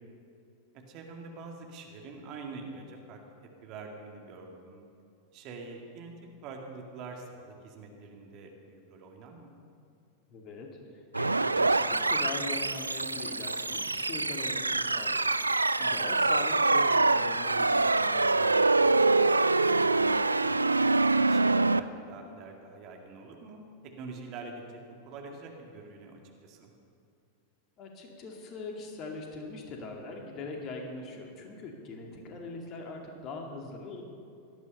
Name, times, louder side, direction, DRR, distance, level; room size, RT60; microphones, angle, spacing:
voice 1, 0.7-3.2 3.6-4.9 5.3-6.1 6.4-9.6 15.8-15.9 19.6-21.0 21.3-23.7 24.0-26.7, right 3 dB, 40° right, 2 dB, 2.1 m, -45 dB
voice 2, 10.3-10.7 11.1-15.2 15.8-18.7 27.8-34.0, left 3 dB, 35° left, 1 dB, 2.3 m, -41 dB
sound 1, 11.1-21.8, right 3 dB, 80° right, 0.3 m, -25 dB
17.5 x 12.5 x 5.5 m, 2.5 s
figure-of-eight pair, 90°, 0 cm